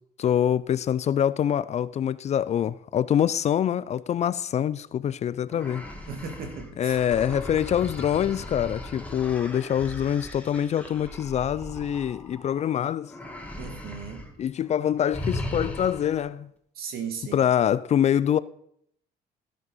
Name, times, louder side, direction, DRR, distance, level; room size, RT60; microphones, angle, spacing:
voice 1, 0.2-5.8 6.8-13.1 14.4-16.5 17.3-18.4, left 9 dB, 40° left, 0.4 m, -25 dB
sound 1, 5.5-12.7 13.1-14.3 14.6-14.8 15.1-16.2, left 1 dB, 10° left, 1.6 m, -37 dB
voice 2, 6.1-7.0 13.6-14.3 16.8-17.5, right 6 dB, 65° right, 2.2 m, -36 dB
15.0 x 5.2 x 5.5 m
cardioid pair, 110°, 17 cm